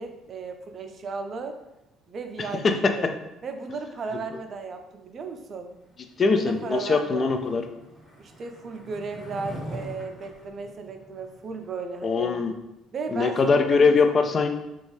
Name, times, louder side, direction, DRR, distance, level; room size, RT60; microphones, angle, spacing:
voice 1, 0.0-1.6 2.1-3.1 3.4-5.7 6.2-7.3 8.2-12.3 12.9-14.0, right 4 dB, 50° right, 6 dB, 0.4 m, -35 dB
voice 2, 6.2-7.6 12.0-12.5 13.1-14.5, left 4 dB, 40° left, 6 dB, 0.4 m, -21 dB
Skateboard, 6.4-11.7, equal, 25° left, 1.5 m, -43 dB
2.5 x 2.3 x 3.1 m, 0.91 s
supercardioid pair, 70°, 0 cm